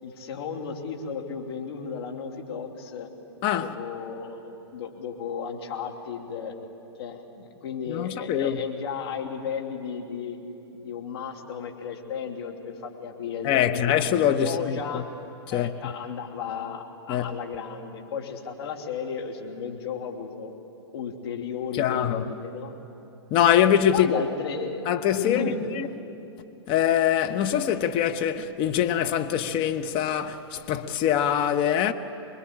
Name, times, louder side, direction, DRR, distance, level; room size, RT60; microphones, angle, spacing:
voice 1, 0.0-3.1 3.6-6.5 7.0-10.4 10.7-13.9 14.3-15.0 15.5-20.5 20.9-22.7 23.9-24.9 25.2-25.6, left 6 dB, 65° left, 3.0 m, -34 dB
voice 2, 3.4-3.7 7.9-8.6 13.4-15.0 15.5-15.7 17.1-17.4 21.7-22.2 23.3-24.2 24.9-25.9 26.7-31.9, left 10 dB, 35° left, 1.1 m, -23 dB
25.5 x 21.5 x 8.8 m
hypercardioid pair, 115°, 15 cm